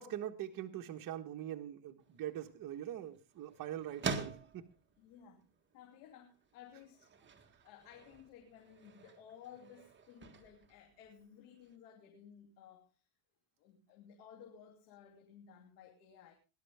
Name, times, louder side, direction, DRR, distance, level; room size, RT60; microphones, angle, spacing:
voice 1, 0.0-4.6, right 11 dB, 45° right, 4 dB, 1.5 m, -43 dB
sound 1, 2.0-11.8, right 4 dB, 25° right, 1.8 m, -47 dB
voice 2, 5.0-5.5 5.7-7.1 7.6-13.1 13.6-16.3, left 8 dB, 90° left, 2 dB, 3.0 m, -57 dB
19.5 x 11.5 x 3.5 m, 0.31 s
cardioid pair, 125°, 47 cm